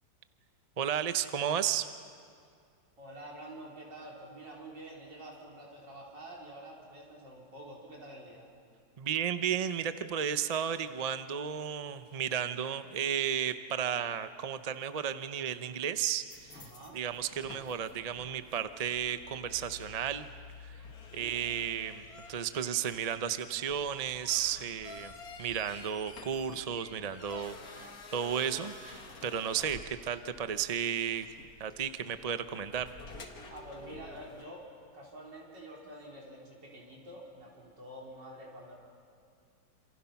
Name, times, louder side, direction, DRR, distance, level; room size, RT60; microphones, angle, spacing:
voice 1, 0.8-1.9 9.0-20.3 20.6-20.7 21.1-22.0 22.3-25.1 25.4-31.3 31.6-32.9, right 8 dB, 50° right, 10 dB, 0.4 m, -33 dB
voice 2, 3.0-8.5 16.5-17.0 21.1-21.3 27.6-28.0 33.5-34.7 34.9-38.7, right 1 dB, 70° right, -3 dB, 5.1 m, -48 dB
sound 1, 16.3-34.4, left 4 dB, 55° left, 2.2 m, -50 dB
28.0 x 27.5 x 5.9 m, 2.2 s
omnidirectional pair, 2.0 m